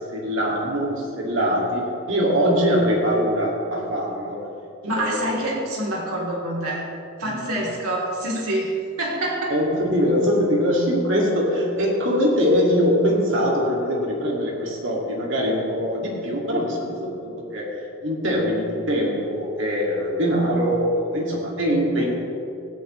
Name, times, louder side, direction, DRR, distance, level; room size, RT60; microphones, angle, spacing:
voice 1, 0.1-4.4 5.0-5.2 7.2-7.4 9.5-17.7 18.0-22.1, equal, 55° right, -3 dB, 2.3 m, -22 dB
voice 2, 4.8-6.9 7.2-9.6, right 1 dB, 85° right, -4 dB, 3.3 m, -26 dB
17.0 x 12.5 x 3.2 m, 2.7 s
head